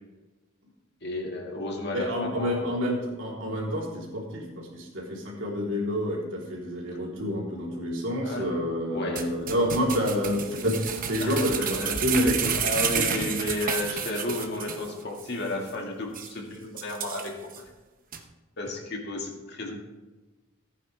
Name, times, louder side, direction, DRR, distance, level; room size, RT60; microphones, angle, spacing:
voice 1, 1.0-2.7 8.2-9.4 11.2-17.6 18.6-19.8, left 2 dB, 55° left, 1 dB, 2.0 m, -33 dB
voice 2, 1.9-12.6, equal, 70° right, -4 dB, 3.5 m, -28 dB
sound 1, 9.2-14.9 15.2-15.3 15.7-15.8 16.1-16.3 16.8-17.6 18.1-18.2, right 7 dB, 45° right, 1.0 m, -30 dB
15.0 x 9.5 x 3.4 m, 1.2 s
head